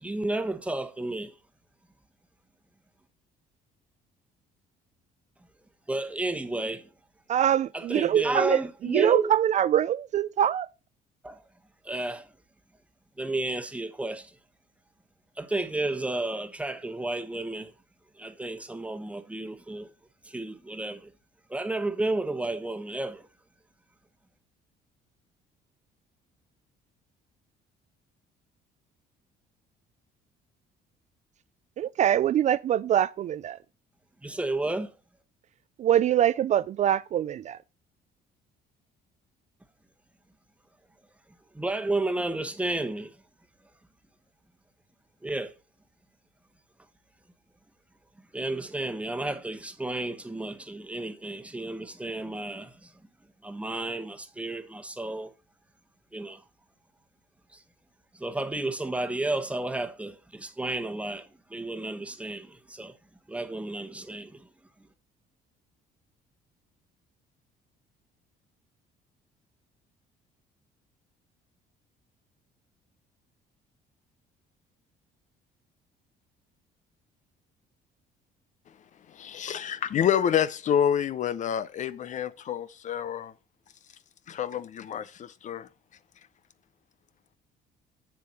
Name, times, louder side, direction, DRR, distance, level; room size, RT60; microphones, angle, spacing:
voice 1, 0.0-1.3 5.9-6.9 7.7-9.3 11.2-11.4 11.8-12.3 13.2-14.4 15.4-17.7 18.2-19.9 20.2-21.1 21.5-23.3 34.2-34.9 41.5-43.1 45.2-45.5 48.3-52.9 53.4-55.3 56.1-56.4 57.5-57.6 58.1-62.9 63.3-64.5, right 2 dB, 5° right, 1.1 m, -32 dB
voice 2, 7.3-10.7 31.8-33.6 35.8-37.6, right 10 dB, 45° right, 0.4 m, -24 dB
voice 3, 79.1-83.3 84.3-85.7, left 9 dB, 45° left, 0.6 m, -28 dB
7.7 x 7.2 x 4.2 m
cardioid pair, 110°, 17 cm